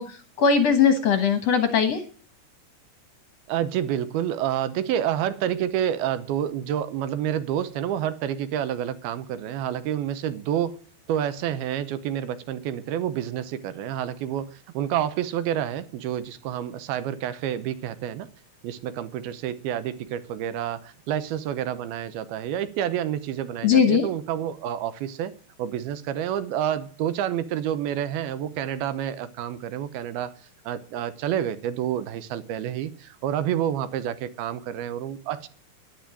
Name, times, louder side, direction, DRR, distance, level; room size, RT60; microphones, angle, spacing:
voice 1, 0.0-2.0 23.6-24.0, left 6 dB, 60° left, 8 dB, 1.7 m, -20 dB
voice 2, 3.5-10.8 11.1-18.3 18.6-25.3 25.6-30.3 30.7-35.5, right 10 dB, 80° right, 13 dB, 2.7 m, -28 dB
10.5 x 10.5 x 8.8 m, 0.43 s
omnidirectional pair, 4.5 m